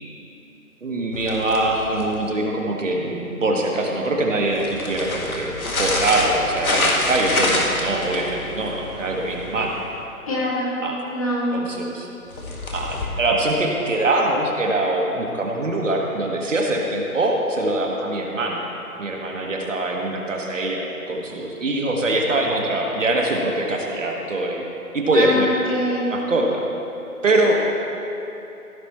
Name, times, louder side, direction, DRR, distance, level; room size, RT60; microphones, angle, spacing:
voice 1, 0.8-9.8 10.8-11.0 11.5-12.1 12.7-18.6 19.0-24.6 24.9-25.5 26.1-26.6 27.2-27.7, right 2 dB, 55° right, 0 dB, 1.5 m, -23 dB
sound 1, 1.1-2.3 4.4-10.0 12.3-13.1, left 2 dB, 70° left, 2.0 m, -27 dB
voice 2, 10.3-10.7 11.1-11.5 25.1-26.2, left 1 dB, 25° left, -6 dB, 1.8 m, -23 dB
16.0 x 6.0 x 4.2 m, 2.9 s
hypercardioid pair, 170°, 44 cm